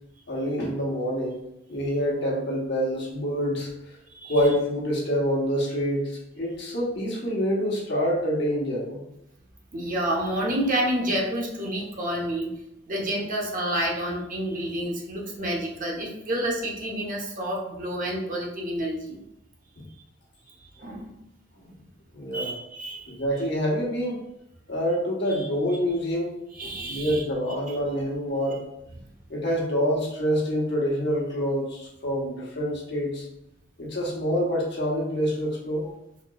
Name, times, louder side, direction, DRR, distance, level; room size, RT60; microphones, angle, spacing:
voice 1, 0.3-1.4 1.7-4.0 4.2-9.1 21.6-21.7 22.1-22.5 23.1-24.2 24.7-26.3 26.9-28.6 29.3-33.3 33.8-35.9, equal, 65° left, -3 dB, 1.1 m, -26 dB
voice 2, 9.7-12.5 12.9-19.2 20.8-21.1 22.3-23.1 25.3-25.4 26.6-27.2, right 1 dB, 45° right, -2 dB, 0.9 m, -29 dB
4.2 x 3.0 x 2.3 m, 0.85 s
head